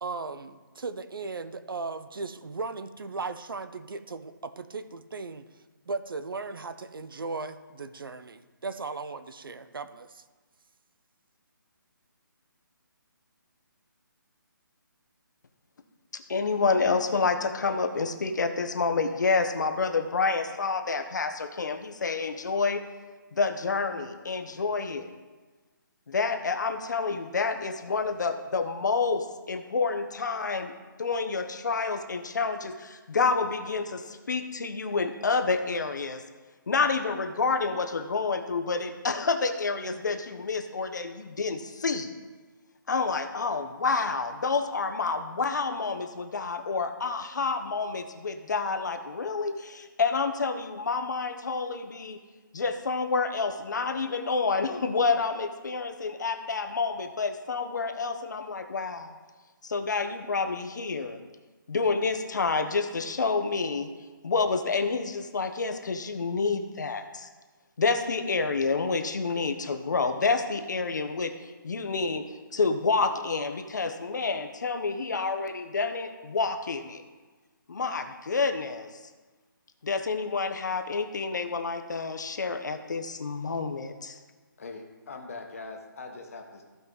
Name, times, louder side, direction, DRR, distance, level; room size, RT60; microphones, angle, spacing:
voice 1, 0.0-5.4 5.9-10.2, right 4 dB, 80° right, 12 dB, 0.8 m, -37 dB
voice 2, 16.3-22.8 23.3-25.1 26.1-30.7 31.0-36.2 36.7-42.1 42.9-52.2 52.5-59.1 59.6-61.2 61.7-63.9 64.2-67.3 67.8-72.2 72.5-77.0 77.7-78.9 79.8-84.2, left 4 dB, 55° left, 7 dB, 1.0 m, -28 dB
voice 3, 84.6-86.6, left 3 dB, 40° left, 3 dB, 1.3 m, -42 dB
15.0 x 5.4 x 4.0 m, 1.3 s
hypercardioid pair, 175°, 11 cm